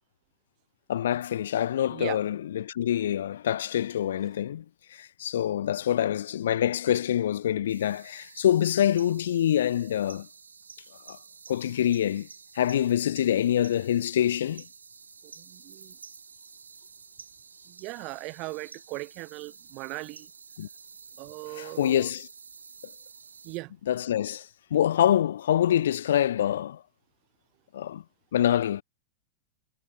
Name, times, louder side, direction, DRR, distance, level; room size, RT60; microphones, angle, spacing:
voice 1, 0.9-4.6 4.9-10.3 11.1-11.2 11.5-12.3 12.5-14.6 20.6-20.7 21.5-22.3 23.9-24.5 24.7-26.8 27.7-28.0 28.3-28.8, left 10 dB, 60° left, 0.4 m, -25 dB
sound 1, 7.7-23.6, right 5 dB, 75° right, 6.2 m, -50 dB
voice 2, 15.4-15.9 17.7-20.3 21.2-22.1 23.4-23.7, right 24 dB, 40° right, 0.8 m, -38 dB
figure-of-eight pair, 90°, 0 cm